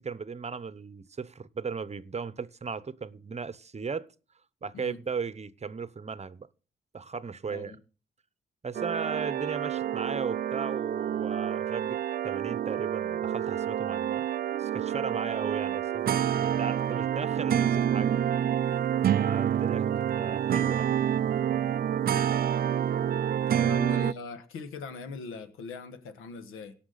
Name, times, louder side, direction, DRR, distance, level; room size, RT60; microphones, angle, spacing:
voice 1, 0.0-4.1 4.6-6.5 6.9-7.8 8.6-12.0 12.2-14.2 14.6-18.1 19.2-19.9 20.2-20.9 23.5-23.8, right 5 dB, 30° right, 0.9 m, -36 dB
sound 1, 8.7-24.1, right 9 dB, 45° right, 0.4 m, -28 dB
voice 2, 22.1-22.4 23.6-26.7, left 4 dB, 85° left, 1.4 m, -41 dB
17.5 x 6.0 x 4.0 m
supercardioid pair, 55°, 21 cm